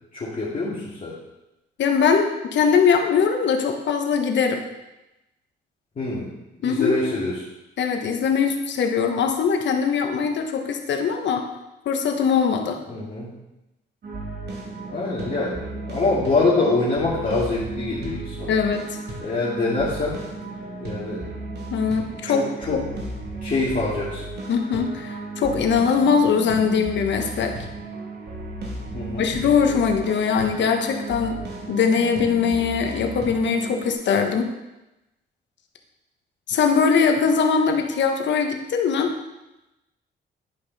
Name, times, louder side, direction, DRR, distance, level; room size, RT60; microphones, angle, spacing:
voice 1, 0.1-1.1 6.0-6.3 6.6-7.5 12.9-13.3 14.9-18.6 19.2-20.2 20.8-21.2 22.2-22.8 23.4-24.3 28.9-29.3, left 3 dB, 40° left, -9 dB, 2.4 m, -25 dB
voice 2, 1.8-4.6 6.6-7.0 7.8-11.5 11.8-12.8 18.5-18.8 21.7-22.8 24.5-27.5 29.2-31.4 31.7-34.5 36.5-39.1, left 6 dB, 65° left, 4 dB, 1.3 m, -21 dB
sound 1, 14.0-33.9, right 2 dB, 55° right, 2.6 m, -34 dB
11.0 x 5.6 x 4.2 m, 0.97 s
cardioid pair, 90°, 20 cm